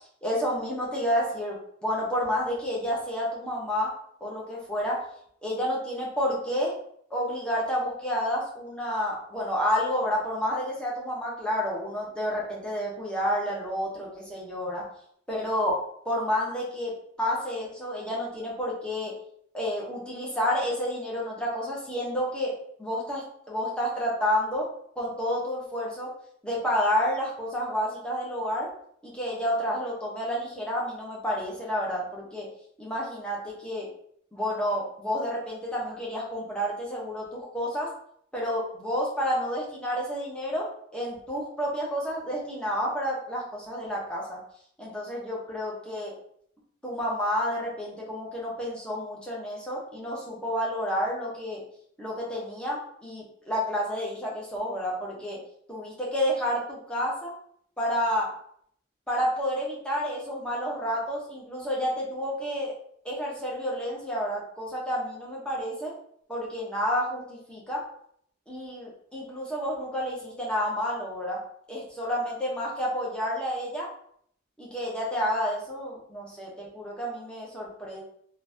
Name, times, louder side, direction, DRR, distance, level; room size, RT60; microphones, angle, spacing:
voice 1, 0.2-3.9 4.2-5.0 5.4-6.7 7.1-14.8 15.3-15.7 16.0-16.9 17.2-19.1 19.5-22.5 22.8-24.7 25.0-26.1 26.4-28.7 29.0-32.5 32.8-33.9 34.3-37.9 38.3-40.7 40.9-44.4 44.8-46.1 46.8-51.6 52.0-55.4 55.7-57.3 57.8-58.3 59.1-62.7 63.0-65.9 66.3-67.8 68.5-71.4 71.7-73.9 74.6-78.0, equal, 5° left, -5 dB, 0.9 m, -30 dB
3.8 x 2.3 x 2.7 m, 0.65 s
head